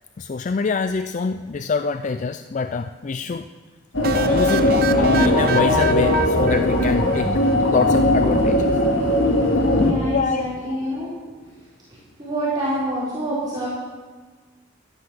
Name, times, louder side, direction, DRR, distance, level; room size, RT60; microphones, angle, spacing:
voice 1, 0.2-3.5 4.2-7.3 7.7-8.7 10.1-10.8, left 4 dB, 40° left, 10 dB, 0.4 m, -25 dB
sound 1, 3.9-9.9, left 1 dB, 75° left, 2.2 m, -19 dB
sound 2, 4.0-7.8, right 5 dB, 50° right, 0.9 m, -28 dB
voice 2, 9.8-11.1 12.2-13.7, right 1 dB, 20° right, -11 dB, 4.1 m, -26 dB
13.0 x 11.5 x 6.1 m, 1.4 s
head